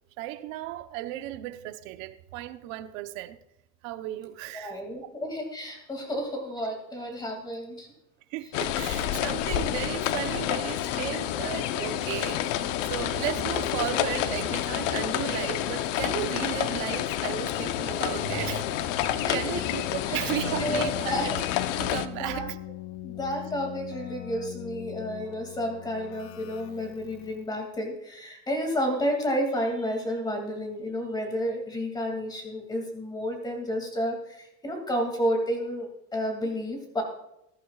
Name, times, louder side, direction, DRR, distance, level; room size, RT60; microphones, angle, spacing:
voice 1, 0.2-3.4 3.8-4.7 8.3-21.2 21.8-22.5, right 14 dB, 90° right, 1.0 m, -35 dB
voice 2, 4.5-7.9 19.2-19.6 20.1-20.2 20.5-21.4 22.2-22.5 23.0-37.0, equal, 10° left, 2.4 m, -31 dB
sound 1, 8.5-22.1, left 11 dB, 80° left, 0.9 m, -29 dB
Keyboard (musical), 19.5-27.6, left 16 dB, 35° left, 0.5 m, -41 dB
20.5 x 11.0 x 2.4 m
cardioid pair, 180°, 38 cm